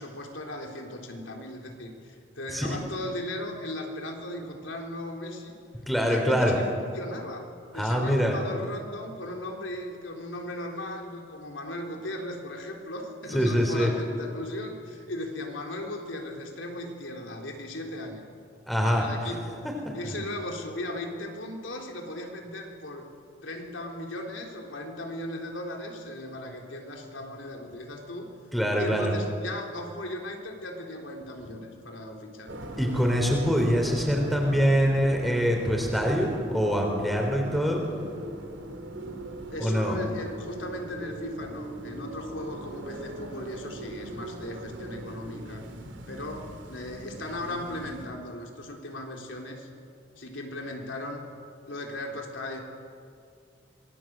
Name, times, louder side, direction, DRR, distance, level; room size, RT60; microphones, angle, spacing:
voice 1, 0.0-5.6 6.0-7.5 7.7-18.3 18.8-19.7 19.9-23.1 23.4-28.3 28.8-32.5 39.0-45.7 46.1-49.7 50.2-51.2 51.7-52.6, left 1 dB, 85° left, 1 dB, 3.7 m, -37 dB
voice 2, 5.9-6.6 7.7-8.4 13.3-13.9 18.7-19.0 20.0-20.1 28.5-29.1 32.8-37.9 39.6-40.0, equal, ahead, 1 dB, 4.1 m, -24 dB
sound 1, 32.5-48.1, right 1 dB, 75° right, 2.9 m, -40 dB
26.0 x 21.0 x 7.8 m, 2.3 s
head